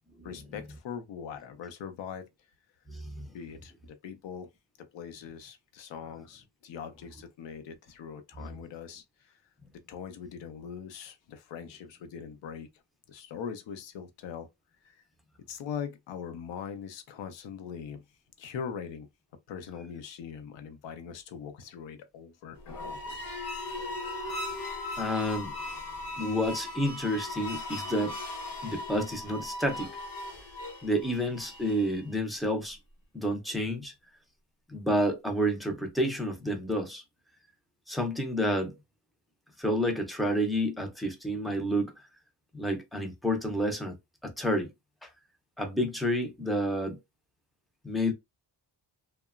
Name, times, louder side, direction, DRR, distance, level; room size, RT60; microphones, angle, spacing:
voice 1, 0.2-2.3 3.3-4.5 4.9-9.4 9.9-12.7 13.1-14.5 14.8-15.0 15.5-18.0 18.4-19.1 19.5-23.2, left 7 dB, 80° left, 0.7 m, -41 dB
voice 2, 2.9-3.3 8.4-8.5 25.0-25.5 26.2-28.2 28.6-29.9 30.8-32.8 33.1-33.9 34.7-37.0 37.9-38.8 39.6-41.9 42.5-44.0 44.2-44.7 45.0-45.1 45.6-47.0 47.8-48.1, equal, ahead, 0.4 m, -29 dB
sound 1, 22.6-32.0, left 2 dB, 50° left, 0.9 m, -38 dB
2.9 x 2.1 x 2.3 m
wide cardioid pair, 145°, 43 cm